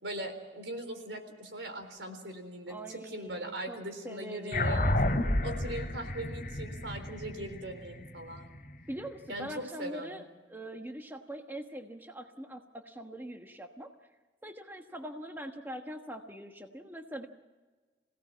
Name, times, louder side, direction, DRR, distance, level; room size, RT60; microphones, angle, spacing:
voice 1, 0.0-4.9 5.4-8.6 9.3-10.2, right 1 dB, 75° right, 6 dB, 3.9 m, -40 dB
voice 2, 2.7-5.1 8.9-13.9 14.4-17.3, equal, 10° right, 4 dB, 1.3 m, -43 dB
sound 1, 4.5-9.3, left 1 dB, 45° left, 2.9 m, -31 dB
26.5 x 17.5 x 7.4 m, 1.3 s
head